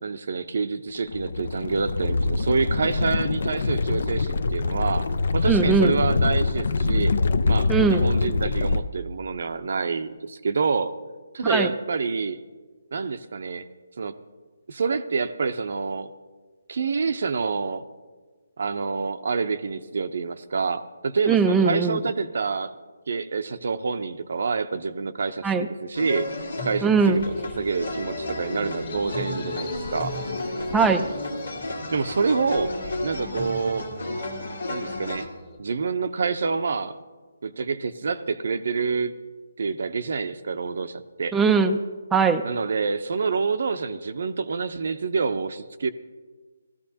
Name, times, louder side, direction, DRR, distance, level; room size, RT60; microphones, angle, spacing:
voice 1, 0.0-5.1 5.3-7.2 7.5-10.9 11.3-12.4 12.9-13.6 14.0-14.1 14.7-16.1 16.7-17.8 18.6-22.7 23.1-26.3 26.6-30.1 31.9-32.7 33.0-33.9 34.7-35.3 35.6-37.0 37.4-39.1 39.6-41.4 42.4-45.9, right 4 dB, 60° right, 10 dB, 0.6 m, -27 dB
sound 1, 1.1-8.8, left 3 dB, 65° left, 0.5 m, -24 dB
voice 2, 5.5-6.0 7.7-8.1 11.5-11.7 21.3-22.0 25.4-25.7 26.8-27.3 30.7-31.1 41.3-41.8 42.1-42.4, right 5 dB, 5° right, 5 dB, 0.4 m, -20 dB
sound 2, 25.9-35.3, left 2 dB, 80° left, 1.8 m, -32 dB
sound 3, 26.9-35.6, left 2 dB, 25° left, 1.5 m, -42 dB
17.5 x 13.5 x 2.8 m, 1.4 s
hypercardioid pair, 155°, 0 cm